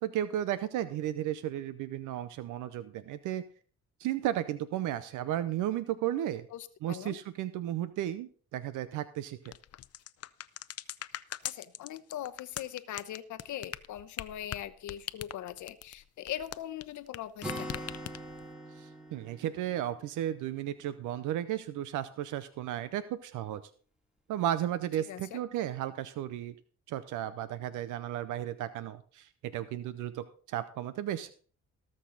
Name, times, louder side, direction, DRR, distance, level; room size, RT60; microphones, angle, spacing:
voice 1, 0.0-3.4 4.0-6.5 6.8-9.4 18.8-23.6 24.3-26.5 26.9-31.3, right 12 dB, 90° right, 14 dB, 0.7 m, -34 dB
voice 2, 6.5-7.2 11.4-17.9 25.1-25.4, left 11 dB, 75° left, 12 dB, 0.9 m, -41 dB
sound 1, 9.5-17.2 17.4-18.4, left 12 dB, 55° left, 0.6 m, -40 dB
Acoustic guitar, 17.4-21.1, equal, 5° right, 2.3 m, -43 dB
19.0 x 6.4 x 3.9 m, 0.43 s
cardioid pair, 90°, 30 cm